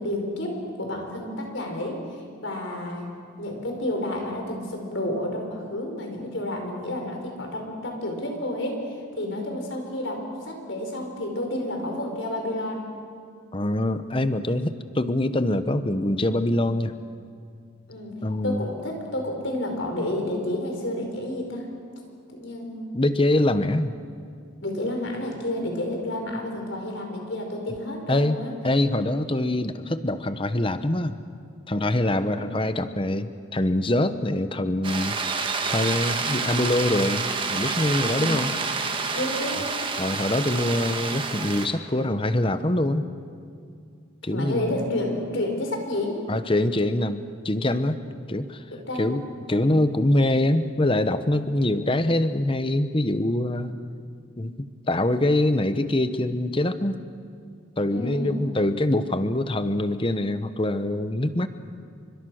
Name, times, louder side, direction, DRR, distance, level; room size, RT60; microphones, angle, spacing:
voice 1, 0.0-3.1 3.4-12.8 17.9-18.1 18.4-21.7 22.3-22.9 24.6-28.5 32.2-32.6 38.0-38.4 39.1-39.7 44.3-46.2 48.7-49.2 49.5-49.9 57.9-58.4, left 1 dB, 65° left, 2 dB, 5.4 m, -30 dB
voice 2, 13.5-16.9 18.2-18.6 22.9-23.9 28.1-28.4 28.6-31.2 31.7-35.2 35.7-37.2 37.5-38.5 40.0-43.1 44.2-44.9 46.3-48.0 48.3-48.6 49.0-53.7 54.4-57.0 57.8-61.5, left 1 dB, 25° left, 11 dB, 0.9 m, -24 dB
sound 1, 34.8-41.7, right 4 dB, 25° right, 1.7 m, -28 dB
30.0 x 25.0 x 6.5 m, 2.3 s
head